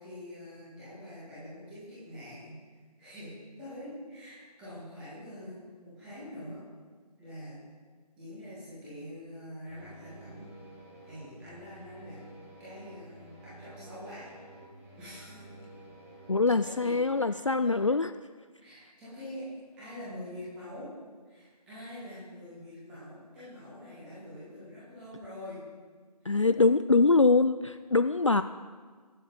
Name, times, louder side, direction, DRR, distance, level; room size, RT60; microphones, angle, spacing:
voice 1, 0.0-2.6 3.0-3.3 3.6-6.6 7.2-7.6 8.2-10.5 11.0-12.2 12.6-14.3 15.0-15.4 16.6-17.9 18.6-19.5 19.8-20.9 21.3-25.6 26.2-26.4, left 1 dB, 5° right, -10 dB, 1.9 m, -45 dB
sound 1, 9.6-16.4, right 1 dB, 20° right, 1.9 m, -51 dB
voice 2, 16.3-18.1 26.3-28.4, left 3 dB, 50° left, 11 dB, 0.4 m, -23 dB
21.5 x 7.3 x 4.1 m, 1.5 s
figure-of-eight pair, 165°, 21 cm